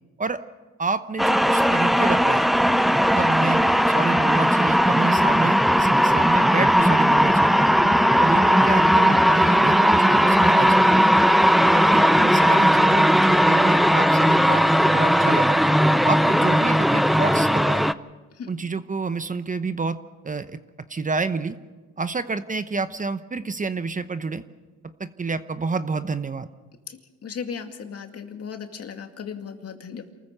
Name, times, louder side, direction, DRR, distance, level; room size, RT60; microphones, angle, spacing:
voice 1, 0.8-2.5 3.1-7.6 8.2-11.0 11.6-15.6 16.0-17.8 18.5-20.6 20.9-21.6 22.0-24.4 25.0-26.5, right 4 dB, 25° right, 11 dB, 0.9 m, -28 dB
sound 1, 1.2-17.9, equal, ahead, 0.5 m, -18 dB
voice 2, 26.9-30.1, left 6 dB, 55° left, 5 dB, 2.3 m, -36 dB
28.0 x 14.5 x 6.8 m, 1.3 s
cardioid pair, 90°, 30 cm